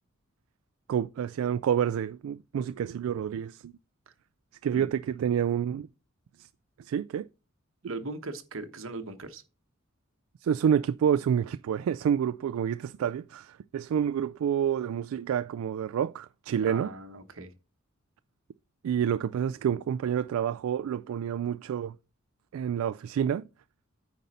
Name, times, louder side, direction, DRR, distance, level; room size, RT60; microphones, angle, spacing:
voice 1, 0.9-3.7 4.6-5.9 6.8-7.3 10.4-16.9 18.8-22.0 22.5-23.4, right 8 dB, 85° right, 0.3 m, -28 dB
voice 2, 7.8-9.4 16.6-17.5, right 2 dB, 70° right, 1.1 m, -39 dB
9.3 x 5.2 x 4.2 m
head